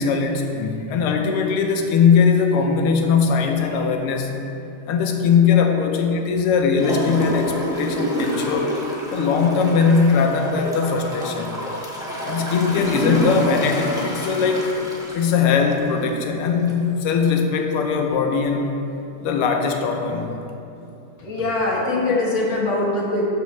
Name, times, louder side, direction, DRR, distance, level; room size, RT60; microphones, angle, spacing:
voice 1, 0.0-4.4 4.9-8.7 9.1-11.5 12.2-14.8 15.1-18.7 19.2-20.4, left 5 dB, 85° left, 4 dB, 1.6 m, -20 dB
Gurgling / Toilet flush, 6.8-16.2 16.7-16.8, equal, 5° right, 0.4 m, -28 dB
voice 2, 21.2-23.2, left 2 dB, 40° left, -3 dB, 1.3 m, -22 dB
12.5 x 5.3 x 3.1 m, 2.9 s
omnidirectional pair, 2.4 m